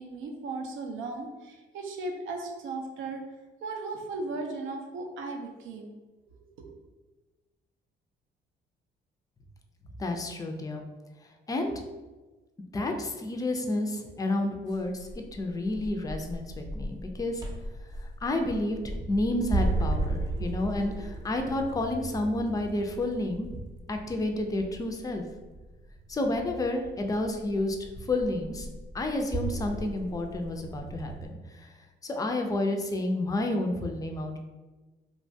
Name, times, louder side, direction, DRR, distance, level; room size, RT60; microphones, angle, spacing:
voice 1, 0.0-3.2 3.6-5.9 6.6-6.7, right 3 dB, 80° right, 2 dB, 0.5 m, -36 dB
voice 2, 10.0-10.8 11.5-11.7 12.7-17.4 18.2-23.6 23.9-25.2 26.1-27.8 28.1-28.7 28.9-31.7 32.0-34.4, left 2 dB, 20° left, 3 dB, 0.3 m, -30 dB
sound 1, 14.7-31.3, right 2 dB, 20° right, 0.6 m, -36 dB
2.9 x 2.2 x 2.6 m, 1.2 s
cardioid pair, 90°, 20 cm